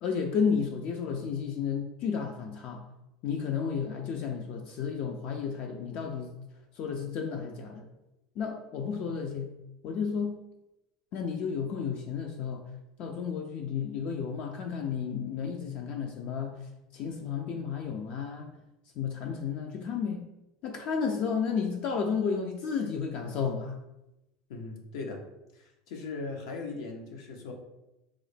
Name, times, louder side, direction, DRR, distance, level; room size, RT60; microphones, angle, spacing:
voice 1, 0.0-2.8 3.2-6.3 6.8-7.8 8.4-9.5 9.8-10.4 11.1-12.6 13.0-16.6 16.9-18.5 19.0-20.2 20.6-23.7, left 6 dB, 50° left, 3 dB, 0.3 m, -32 dB
voice 2, 24.5-25.2 25.5-27.5, left 3 dB, 85° left, 2 dB, 0.7 m, -39 dB
3.6 x 2.1 x 3.3 m, 0.94 s
supercardioid pair, 130°, 3 cm